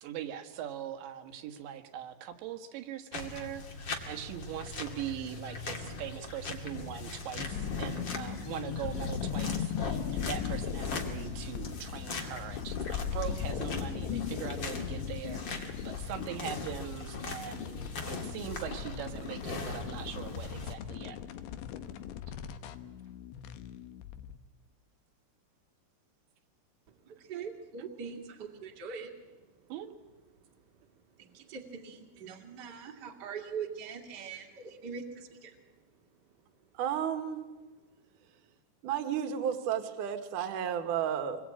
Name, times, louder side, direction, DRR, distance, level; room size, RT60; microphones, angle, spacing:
voice 1, 0.0-21.2 29.7-29.9, right 10 dB, 90° right, 6 dB, 3.8 m, -41 dB
sound 1, 3.1-20.7, left 3 dB, 35° left, 2.0 m, -41 dB
sound 2, 7.4-24.4, left 8 dB, 90° left, 3.3 m, -38 dB
voice 2, 27.3-29.1 31.2-35.6, right 6 dB, 35° right, 3 dB, 2.0 m, -42 dB
voice 3, 36.8-37.4 38.8-41.4, right 9 dB, 60° right, 7 dB, 2.6 m, -32 dB
26.5 x 21.5 x 8.6 m, 1.2 s
omnidirectional pair, 5.0 m